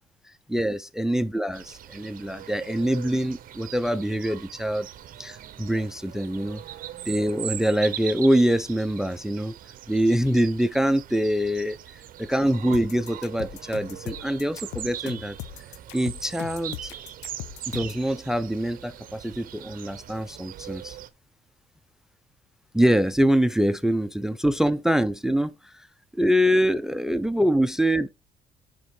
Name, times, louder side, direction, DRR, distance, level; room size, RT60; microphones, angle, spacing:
voice 1, 0.5-4.9 5.2-6.6 7.1-9.6 9.9-11.8 12.2-15.4 15.9-16.9 17.7-21.0 22.7-25.7 26.1-28.1, equal, 5° right, 0.4 m, -24 dB
sound 1, 1.5-21.1, right 11 dB, 55° right, 0.8 m, -41 dB
sound 2, 12.7-18.0, left 15 dB, 90° left, 0.6 m, -39 dB
9.8 x 3.6 x 4.7 m
cardioid pair, 110°, 17 cm